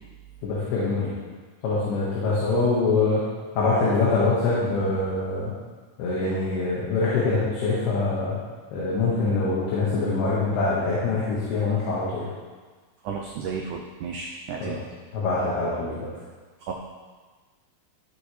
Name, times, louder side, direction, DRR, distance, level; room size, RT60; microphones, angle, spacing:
voice 1, 0.4-1.1 1.6-3.2 3.6-5.5 6.0-8.4 8.7-12.2 14.6-14.8 15.1-16.1, left 3 dB, 90° left, -7 dB, 3.6 m, -24 dB
voice 2, 13.0-14.8 16.6-16.7, right 5 dB, 85° right, 1 dB, 1.7 m, -33 dB
14.5 x 6.5 x 3.2 m, 1.4 s
omnidirectional pair, 4.4 m